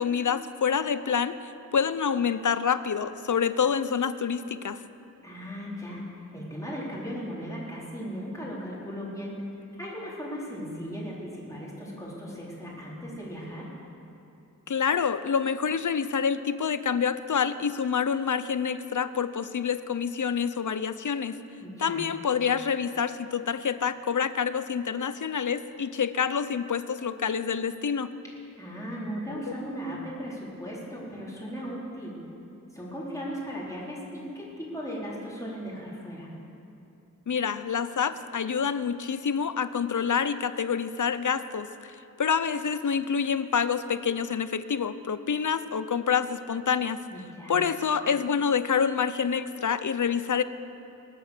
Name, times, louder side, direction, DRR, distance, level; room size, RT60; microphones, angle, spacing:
voice 1, 0.0-1.4 1.7-4.8 14.7-21.3 21.8-28.1 37.3-41.9 42.2-47.0 47.5-50.4, left 7 dB, 65° left, 13 dB, 0.6 m, -27 dB
voice 2, 5.2-6.0 6.3-9.3 9.8-13.7 21.6-22.0 28.6-32.1 32.7-36.3 47.1-47.6, equal, 10° left, -6 dB, 4.1 m, -37 dB
20.5 x 8.5 x 6.7 m, 2.9 s
wide cardioid pair, 60°, 32 cm